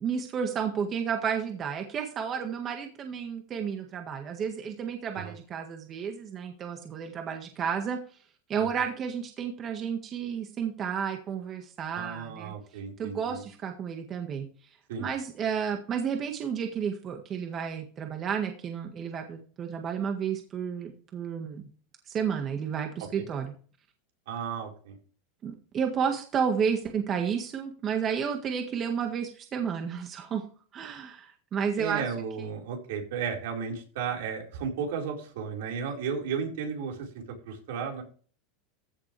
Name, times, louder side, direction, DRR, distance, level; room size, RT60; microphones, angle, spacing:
voice 1, 0.0-8.0 8.5-12.5 13.0-14.5 15.0-21.7 22.1-23.5 25.4-30.4 30.7-32.0, right 7 dB, 30° right, 4 dB, 1.7 m, -31 dB
voice 2, 11.9-13.4 14.9-15.1 23.0-23.3 24.3-25.0 31.8-38.0, right 6 dB, 75° right, 0 dB, 4.7 m, -34 dB
15.0 x 7.2 x 3.4 m, 0.40 s
supercardioid pair, 145°, 0 cm